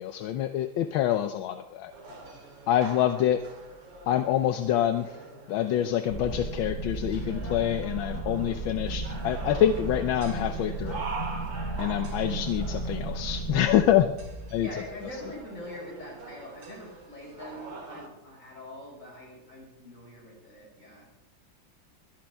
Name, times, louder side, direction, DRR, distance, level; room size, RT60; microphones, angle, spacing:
voice 1, 0.0-1.9 2.7-3.4 4.1-5.2 5.5-11.0 11.8-14.1 14.5-14.7, left 11 dB, 80° left, 9 dB, 1.5 m, -26 dB
sound 1, 1.9-18.1, right 3 dB, 70° right, 2.9 m, -44 dB
sound 2, 6.1-15.3, right 3 dB, 20° left, 3.0 m, -35 dB
voice 2, 14.6-21.1, left 1 dB, 40° left, -2 dB, 6.0 m, -43 dB
22.5 x 13.0 x 3.5 m, 0.88 s
omnidirectional pair, 2.1 m